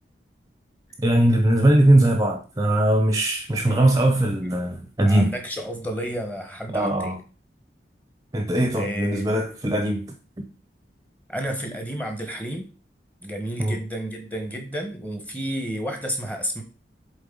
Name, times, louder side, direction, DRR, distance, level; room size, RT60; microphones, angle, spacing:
voice 1, 1.0-5.3 6.7-7.2 8.3-10.1 10.4-10.5 13.6-13.8, right 1 dB, 20° right, 0.7 m, -20 dB
voice 2, 5.0-7.1 8.7-9.3 11.3-12.7 13.2-16.6, equal, 10° left, 1.1 m, -31 dB
7.7 x 3.8 x 3.8 m
head